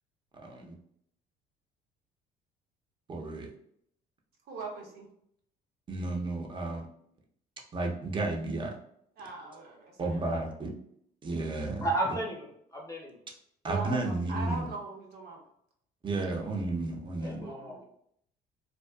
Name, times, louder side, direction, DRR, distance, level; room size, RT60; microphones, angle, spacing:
voice 1, 0.3-0.7 3.1-3.5 5.9-6.8 7.7-8.8 10.0-10.7 11.2-11.9 13.6-14.7 16.0-17.5, right 2 dB, 30° right, 1 dB, 0.5 m, -32 dB
voice 2, 4.4-5.1 9.2-10.2 13.7-15.5 17.4-17.8, right 3 dB, 70° right, 0 dB, 0.7 m, -40 dB
voice 3, 11.8-13.2 17.2-17.8, right 2 dB, 20° left, 0 dB, 0.6 m, -33 dB
2.6 x 2.2 x 2.2 m, 0.70 s
cardioid pair, 110°, 17 cm